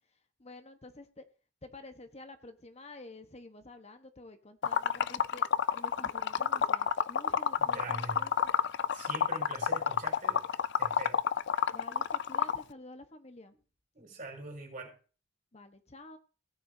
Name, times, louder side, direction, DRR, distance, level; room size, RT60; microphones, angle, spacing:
voice 1, 0.4-1.2 1.6-5.5 5.7-8.3 11.7-13.5 15.5-16.2, left 2 dB, 35° left, 1.1 m, -50 dB
Liquid, 4.6-12.6, left 7 dB, 65° left, 0.4 m, -29 dB
voice 2, 7.6-8.3 8.9-10.4 10.8-11.2 13.9-15.0, right 2 dB, 40° right, 5.6 m, -43 dB
17.5 x 9.3 x 2.7 m
head